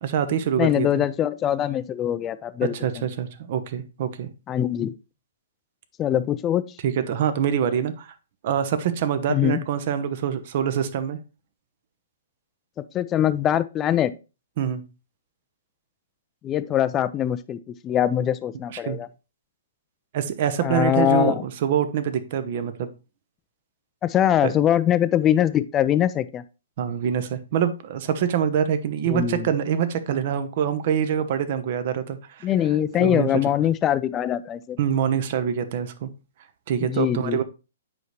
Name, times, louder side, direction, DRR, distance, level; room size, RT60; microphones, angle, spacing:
voice 1, 0.0-1.0 2.8-4.3 6.8-8.1 8.4-11.2 14.6-14.8 18.9-19.0 20.1-22.9 24.4-24.5 26.8-32.5 33.0-33.3 34.8-36.1 36.7-37.4, right 8 dB, 45° right, 0.8 m, -25 dB
voice 2, 0.6-3.1 4.5-4.9 6.0-6.6 9.3-9.6 12.8-14.1 16.4-19.1 20.6-21.4 24.0-26.4 29.1-29.5 32.4-34.8 36.8-37.4, left 11 dB, 20° left, 0.4 m, -23 dB
7.8 x 5.2 x 3.1 m
figure-of-eight pair, 120°, 0 cm